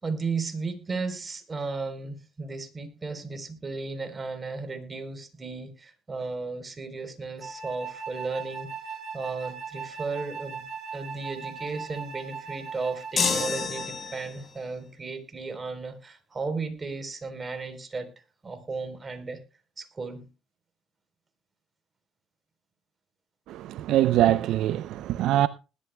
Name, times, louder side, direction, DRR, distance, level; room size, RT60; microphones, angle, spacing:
voice 1, 0.0-10.6 10.9-18.1 18.4-19.4 19.8-20.3, right 4 dB, 30° right, 3.6 m, -35 dB
Wind instrument woodwind instrument, 7.4-14.2, right 5 dB, 55° right, 5.1 m, -39 dB
sound 1, 13.2-14.5, left 5 dB, 45° left, 5.5 m, -28 dB
voice 2, 23.5-25.5, right 13 dB, 75° right, 0.5 m, -23 dB
20.0 x 12.5 x 2.2 m
supercardioid pair, 75°, 0 cm